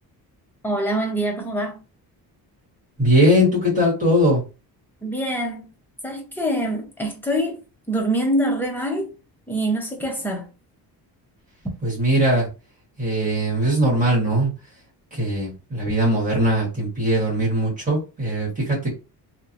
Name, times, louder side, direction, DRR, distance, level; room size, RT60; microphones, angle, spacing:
voice 1, 0.6-1.8 5.0-5.7 6.0-7.6 7.9-9.1 9.5-10.5, right 1 dB, 5° left, 0.6 m, -25 dB
voice 2, 3.0-4.4 11.8-12.5 13.0-14.5 15.1-18.9, equal, 20° right, 1.4 m, -20 dB
2.9 x 2.3 x 2.5 m
cardioid pair, 160°, 38 cm